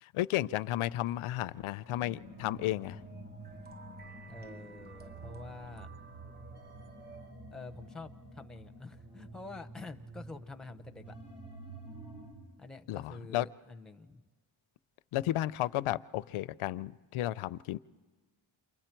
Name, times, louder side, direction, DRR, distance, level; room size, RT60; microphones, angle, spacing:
voice 1, 0.0-3.0 12.9-13.5 15.1-17.8, left 14 dB, 80° left, 18 dB, 0.5 m, -33 dB
sound 1, 1.9-12.3, right 2 dB, 55° right, 6.0 m, -49 dB
sound 2, 2.2-7.3, right 4 dB, 20° right, 1.0 m, -54 dB
voice 2, 4.3-5.9 7.5-11.2 12.6-14.2, left 3 dB, ahead, 6 dB, 0.6 m, -47 dB
29.0 x 23.5 x 4.5 m, 1.4 s
cardioid pair, 125°, 49 cm